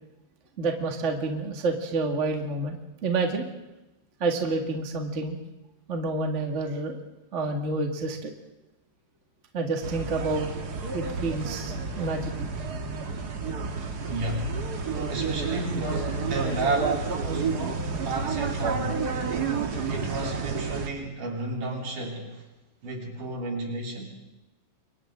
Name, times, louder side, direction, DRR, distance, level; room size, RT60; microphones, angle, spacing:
voice 1, 0.6-2.8 3.0-3.5 4.2-5.4 5.9-7.0 7.3-8.3 9.5-10.5 10.9-12.5, right 3 dB, 25° right, 3 dB, 1.9 m, -28 dB
sound 1, 9.8-20.9, right 4 dB, 40° right, 1.5 m, -30 dB
voice 2, 14.1-14.6 15.1-19.2 19.9-22.4 22.8-24.1, right 2 dB, 70° right, 0 dB, 5.1 m, -32 dB
30.0 x 24.5 x 3.8 m, 0.98 s
omnidirectional pair, 3.8 m